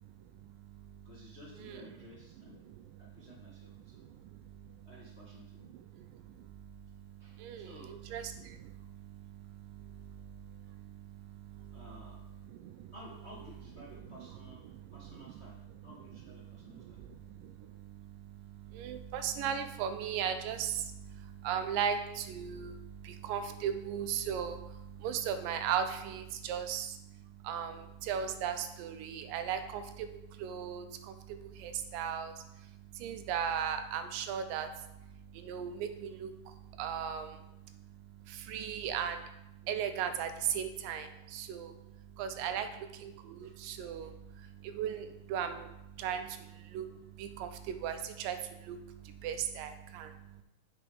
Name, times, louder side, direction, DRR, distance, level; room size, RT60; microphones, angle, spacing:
voice 1, 1.0-2.6 3.0-4.0 4.8-5.7 7.2-7.9 11.7-12.2 12.9-14.6 14.9-17.0 36.7-36.8 41.0-41.2 43.4-43.5, left 1 dB, 50° left, -6 dB, 0.7 m, -54 dB
voice 2, 18.8-20.7 21.4-22.7 23.3-24.6 25.0-26.9 27.5-27.7 28.1-29.8 30.4-30.9 31.6-32.3 33.0-34.7 35.5-36.3 36.8-37.3 38.5-39.2 39.7-40.3 40.6-41.1 41.3-41.7 42.2-42.7 43.0-43.1 43.6-44.1 44.8-45.0 45.3-45.6 46.0-46.2 46.7-46.8 47.2-47.5 47.8-48.4 48.7-48.8 49.2-50.1, right 8 dB, 80° right, 8 dB, 2.3 m, -35 dB
8.4 x 6.0 x 4.9 m, 0.87 s
omnidirectional pair, 4.0 m